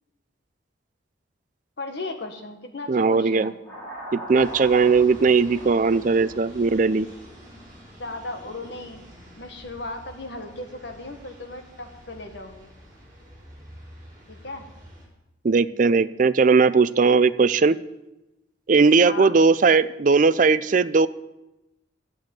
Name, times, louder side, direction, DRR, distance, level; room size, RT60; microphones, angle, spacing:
voice 1, 1.8-3.6 8.0-9.0 9.4-12.7 14.3-14.6 19.0-19.4, left 2 dB, 60° left, 5 dB, 1.5 m, -36 dB
voice 2, 2.9-3.5 4.1-7.1 15.4-17.8 18.7-21.1, right 4 dB, 40° right, 15 dB, 0.4 m, -18 dB
sound 1, 3.7-8.8, equal, 10° left, 5.0 m, -41 dB
sound 2, 4.3-15.1, equal, 20° right, 4.6 m, -48 dB
12.0 x 7.8 x 8.8 m, 0.96 s
head